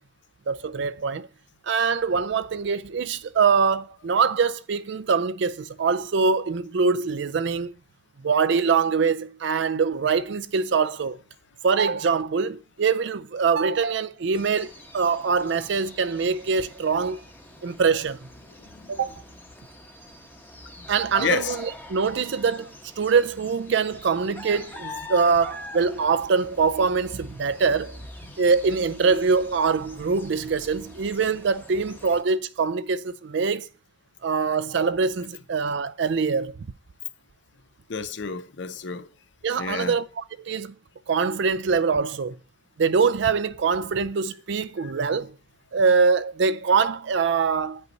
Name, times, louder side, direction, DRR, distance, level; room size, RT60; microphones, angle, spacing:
voice 1, 0.5-1.3 1.7-7.7 8.2-11.2 11.6-17.2 17.6-18.2 18.9-19.2 20.9-28.0 28.4-33.7 34.2-36.6 39.4-40.7 41.1-42.4 42.8-45.3 45.7-47.8, right 5 dB, 65° right, 0.4 m, -23 dB
sound 1, 14.3-32.2, left 1 dB, 10° left, 1.0 m, -44 dB
voice 2, 18.6-18.9 20.8-20.9 21.2-21.6 28.3-28.4 37.9-39.1 39.6-40.0 44.8-44.9, left 6 dB, 65° left, 0.6 m, -30 dB
9.3 x 5.5 x 4.0 m
head